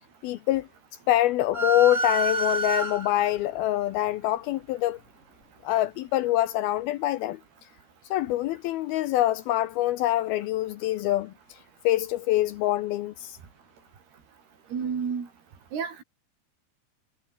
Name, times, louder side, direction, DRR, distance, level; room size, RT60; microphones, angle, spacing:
voice 1, 0.2-0.7 1.1-5.0 5.6-7.4 8.1-11.3 11.8-13.4, left 15 dB, 75° left, 2.4 m, -25 dB
sound 1, 1.5-3.4, right 2 dB, 15° right, 4.0 m, -28 dB
voice 2, 14.7-15.3 15.7-16.0, right 6 dB, 65° right, 6.4 m, -30 dB
omnidirectional pair, 4.9 m